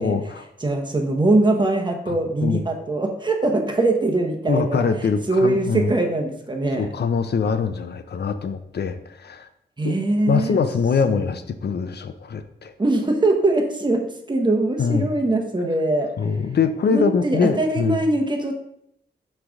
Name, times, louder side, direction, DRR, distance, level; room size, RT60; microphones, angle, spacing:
voice 1, 0.0-0.4 2.1-2.6 4.5-5.9 6.8-9.5 9.8-9.9 10.3-12.7 14.8-15.1 16.2-18.0, left 5 dB, 65° left, 10 dB, 0.6 m, -23 dB
voice 2, 0.6-4.8 5.3-6.9 9.8-10.6 11.0-11.2 12.8-16.1 16.9-18.5, right 2 dB, 25° right, 3 dB, 1.0 m, -22 dB
6.0 x 3.3 x 5.1 m, 0.75 s
cardioid pair, 70°, 18 cm